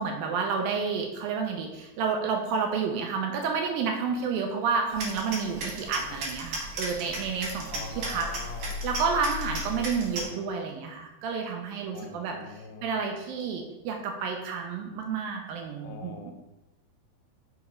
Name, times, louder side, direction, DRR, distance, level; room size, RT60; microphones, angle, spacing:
voice 1, 0.0-7.7 8.1-8.3 8.8-12.4 12.8-16.3, right 5 dB, 75° right, 2 dB, 2.4 m, -30 dB
sound 1, 4.9-10.2, equal, 60° right, 2.8 m, -35 dB
voice 2, 7.7-8.8 9.8-10.5 11.9-12.9 15.8-16.3, left 4 dB, 85° left, 4 dB, 2.7 m, -44 dB
6.5 x 5.0 x 4.8 m, 0.99 s
omnidirectional pair, 4.5 m